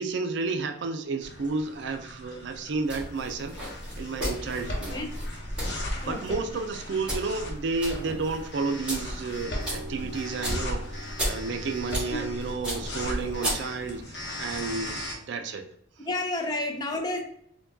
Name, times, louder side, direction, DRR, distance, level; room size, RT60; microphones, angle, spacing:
voice 1, 0.0-3.6 4.0-4.9 5.8-15.6, right 4 dB, 65° right, 6 dB, 0.4 m, -31 dB
sound 1, 1.2-15.2, left 1 dB, 60° left, 0.8 m, -37 dB
sound 2, 2.8-14.0, equal, 5° right, 1.3 m, -36 dB
voice 2, 6.0-6.4 12.1-12.3 16.0-17.2, left 2 dB, 20° left, 3 dB, 0.4 m, -31 dB
sound 3, 9.3-14.1, right 2 dB, 45° right, 0.8 m, -48 dB
4.4 x 2.2 x 2.6 m, 0.68 s
head